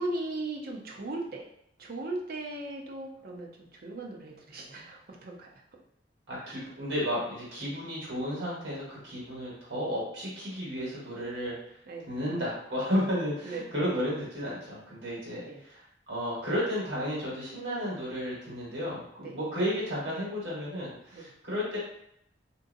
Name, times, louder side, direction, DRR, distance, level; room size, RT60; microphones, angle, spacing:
voice 1, 0.0-1.5 1.8-5.5 6.4-6.7 11.9-12.1 13.4-13.7 15.4-15.6 19.2-19.4 21.1-21.3, right 2 dB, 55° right, -1 dB, 0.7 m, -37 dB
voice 2, 6.3-11.5 12.1-21.8, equal, 80° right, -6 dB, 1.4 m, -33 dB
3.6 x 2.7 x 2.6 m, 0.74 s
head